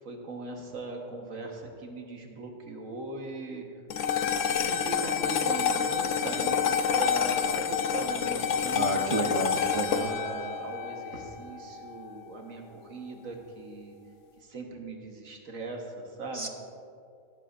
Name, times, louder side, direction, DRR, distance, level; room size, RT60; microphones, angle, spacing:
voice 1, 0.0-3.7 4.6-9.4 9.9-14.0 14.4-16.5, right 3 dB, 85° right, 2 dB, 1.8 m, -39 dB
sound 1, 3.9-12.4, left 7 dB, 75° left, 1.0 m, -28 dB
voice 2, 8.7-10.1 16.3-16.5, right 2 dB, 30° right, 3 dB, 0.7 m, -31 dB
19.0 x 11.5 x 2.6 m, 2.5 s
omnidirectional pair, 1.3 m